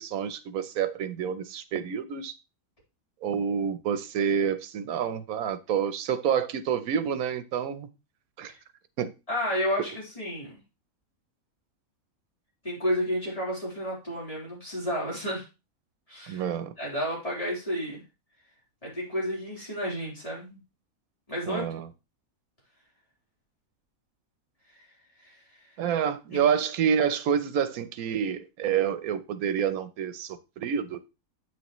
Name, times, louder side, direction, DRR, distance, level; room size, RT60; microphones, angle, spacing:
voice 1, 0.0-2.3 3.2-7.9 8.4-8.5 9.0-9.1 9.8-9.9 16.3-16.7 21.5-21.9 25.8-31.0, right 8 dB, 85° right, 1.2 m, -28 dB
voice 2, 9.3-10.6 12.6-15.5 16.1-16.4 16.8-18.0 18.8-20.6 21.3-21.7 24.7-24.9 25.2-25.4 26.3-26.5, equal, 25° left, 3.8 m, -31 dB
8.4 x 6.3 x 3.0 m
omnidirectional pair, 1.5 m